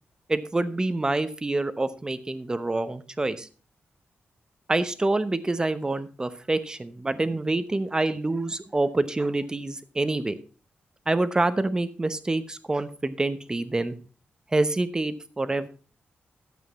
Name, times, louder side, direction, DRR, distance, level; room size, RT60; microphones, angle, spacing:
voice 1, 0.3-3.5 4.7-10.4 11.1-13.9 14.5-15.7, right 2 dB, 20° right, 13 dB, 0.9 m, -26 dB
13.0 x 8.2 x 4.1 m, 0.36 s
wide cardioid pair, 125°, 4 cm